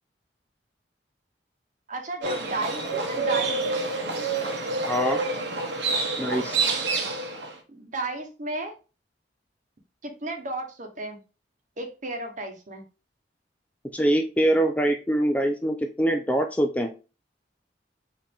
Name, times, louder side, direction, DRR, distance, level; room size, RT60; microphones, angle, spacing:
voice 1, 1.9-3.6 7.7-8.7 10.0-11.2 11.8-12.8, right 2 dB, 45° right, 4 dB, 1.0 m, -33 dB
Livestock farm animals working animals, 2.2-7.5, right 3 dB, 75° right, 1.0 m, -27 dB
voice 2, 4.8-5.2 6.2-6.6 13.9-16.9, right 1 dB, 10° left, 5 dB, 0.4 m, -24 dB
5.0 x 2.8 x 3.5 m, 0.31 s
head